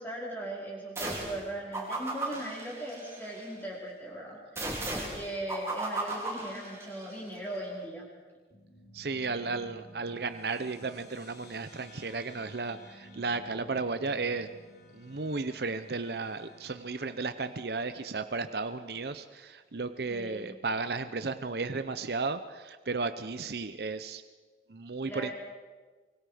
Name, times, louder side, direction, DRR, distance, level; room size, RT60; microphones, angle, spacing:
voice 1, 0.0-8.1 20.1-20.6 25.1-25.3, right 1 dB, 10° left, -4 dB, 4.9 m, -39 dB
sound 1, 1.0-1.4 1.7-3.5 4.6-7.2, right 2 dB, 15° right, 4.4 m, -36 dB
sound 2, 8.5-19.3, equal, 75° left, 3.6 m, -54 dB
voice 2, 8.9-14.5 14.9-24.2 24.7-25.3, right 4 dB, 65° right, 10 dB, 0.7 m, -34 dB
25.0 x 23.0 x 5.1 m, 1.4 s
head